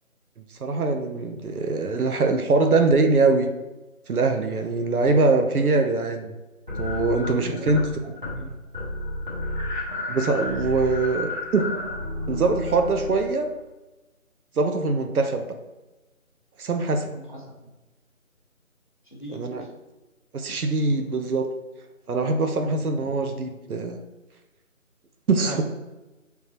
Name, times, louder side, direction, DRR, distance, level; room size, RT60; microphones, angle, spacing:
voice 1, 0.6-3.5 4.1-6.3 6.8-7.8 10.1-11.7 12.3-13.5 14.6-15.5 16.6-17.2 19.3-19.6 20.3-21.5 22.1-24.0 25.3-25.6, right 3 dB, 90° right, 5 dB, 0.7 m, -23 dB
sound 1, 6.7-7.9 8.2-8.5 8.7-13.5, left 2 dB, 35° right, 1.1 m, -31 dB
voice 2, 7.1-8.7 17.1-17.7 19.0-19.7 20.4-20.6 22.5-22.8 25.3-25.6, equal, 35° left, -2 dB, 0.7 m, -40 dB
4.6 x 3.5 x 2.9 m, 1.1 s
figure-of-eight pair, 180°, 42 cm